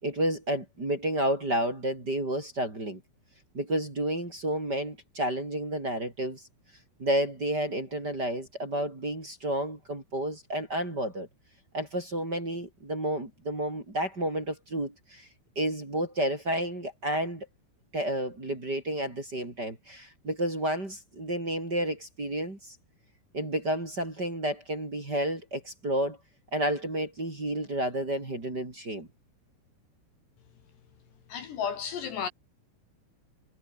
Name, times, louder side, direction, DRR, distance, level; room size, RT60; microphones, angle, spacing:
voice 1, 0.0-3.0 3.5-6.4 7.0-11.3 11.7-15.3 15.5-17.5 17.9-22.8 23.3-26.2 26.5-29.1, right 1 dB, 20° right, 4.5 m, -31 dB
voice 2, 31.3-32.3, left 7 dB, 60° left, 4.2 m, -33 dB
omnidirectional pair, 6.0 m